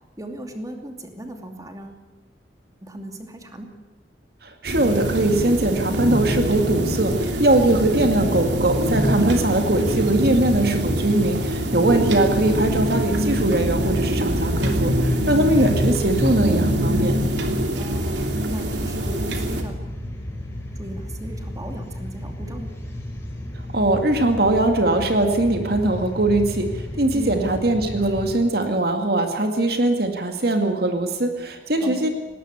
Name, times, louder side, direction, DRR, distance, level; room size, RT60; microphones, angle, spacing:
voice 1, 0.2-2.0 2.8-3.7 17.8-18.2 18.5-19.9 20.8-22.7 27.1-27.4 31.8-32.1, right 1 dB, 20° right, 4 dB, 2.7 m, -36 dB
voice 2, 4.4-17.2 23.7-32.1, right 2 dB, 60° right, 5 dB, 2.2 m, -21 dB
sound 1, 4.6-19.6, equal, 75° right, 2.9 m, -23 dB
sound 2, 19.1-28.3, left 1 dB, 15° left, 4.6 m, -33 dB
19.5 x 18.5 x 8.1 m, 1.2 s
head